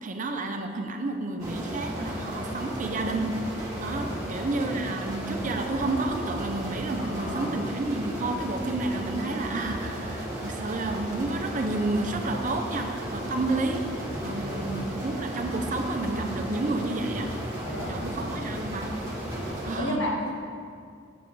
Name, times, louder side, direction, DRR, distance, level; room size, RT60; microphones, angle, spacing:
voice 1, 0.0-3.4 3.8-13.9 14.2-17.3 17.9-18.9 19.3-20.1, right 2 dB, 40° right, 4 dB, 0.7 m, -30 dB
sound 1, 1.4-19.8, right 1 dB, 20° right, 1.8 m, -34 dB
voice 2, 7.0-7.6 14.0-14.8 15.3-15.6 17.6-18.4 19.3-20.3, equal, 75° left, -3 dB, 1.9 m, -35 dB
8.3 x 8.1 x 4.7 m, 2.2 s
head